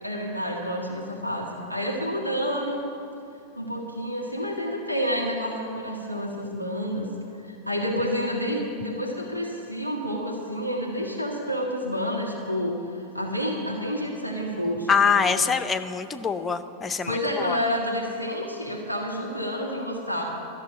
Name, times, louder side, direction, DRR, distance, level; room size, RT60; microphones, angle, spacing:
voice 1, 0.0-2.9 3.5-7.1 7.4-14.9 15.2-15.5 17.1-20.3, equal, 90° right, -1 dB, 1.7 m, -29 dB
voice 2, 14.9-17.6, left 6 dB, 15° left, 9 dB, 0.7 m, -24 dB
13.0 x 7.0 x 10.0 m, 2.7 s
figure-of-eight pair, 90°, 0 cm